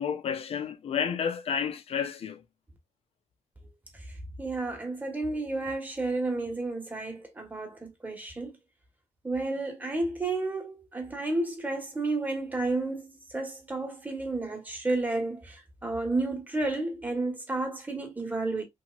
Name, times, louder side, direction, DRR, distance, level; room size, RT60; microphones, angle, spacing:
voice 1, 0.0-2.4, left 7 dB, 50° left, 0.5 m, -31 dB
voice 2, 3.9-8.6 9.2-18.6, right 2 dB, 15° right, 1.1 m, -31 dB
2.9 x 2.8 x 2.3 m
cardioid pair, 115°, 13 cm